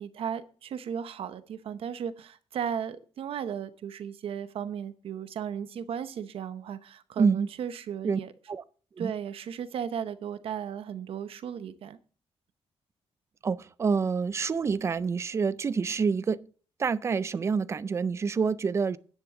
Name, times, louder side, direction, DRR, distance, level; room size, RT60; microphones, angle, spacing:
voice 1, 0.0-8.3 9.0-12.0, right 8 dB, 60° right, 0.8 m, -35 dB
voice 2, 7.2-7.5 8.0-8.2 8.5-8.6 9.0-9.1 13.4-16.4 16.8-19.0, right 5 dB, 25° right, 0.4 m, -27 dB
10.5 x 10.0 x 3.7 m
wide cardioid pair, 180°, 11 cm